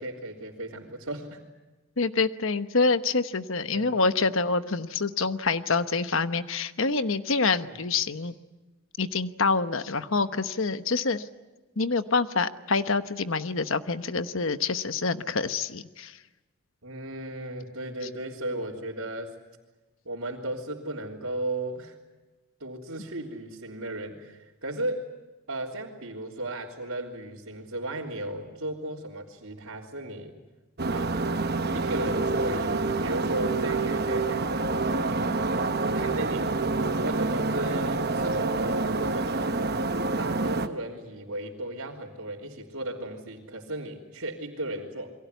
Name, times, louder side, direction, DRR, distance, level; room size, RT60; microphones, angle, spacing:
voice 1, 0.0-1.4 3.6-4.0 7.6-7.8 16.8-19.4 20.1-22.0 22.6-25.1 25.5-30.3 30.9-31.2 31.7-34.5 34.8-35.2 35.9-36.5 37.0-39.4 40.2-45.1, right 1 dB, 75° right, -7 dB, 3.5 m, -35 dB
voice 2, 2.0-8.3 9.0-11.2 11.8-16.1, left 4 dB, 65° left, 11 dB, 1.1 m, -26 dB
sound 1, 30.8-40.7, right 3 dB, 45° right, 1.1 m, -27 dB
29.0 x 23.0 x 8.2 m, 1.1 s
head